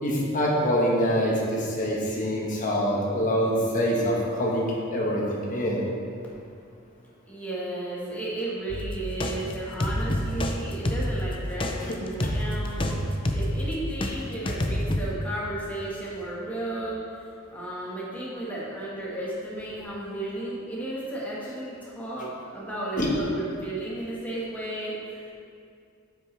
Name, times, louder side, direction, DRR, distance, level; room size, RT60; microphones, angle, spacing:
voice 1, 0.0-5.8 11.9-12.0 12.2-12.3 23.0-23.1, equal, 40° left, -3 dB, 1.3 m, -25 dB
voice 2, 7.3-12.9 13.3-17.0 17.5-25.2, right 1 dB, 10° left, -7 dB, 1.5 m, -34 dB
sound 1, 8.7-14.1 14.5-15.0, left 1 dB, 25° left, 0.5 m, -28 dB
9.1 x 6.0 x 3.3 m, 2.4 s
head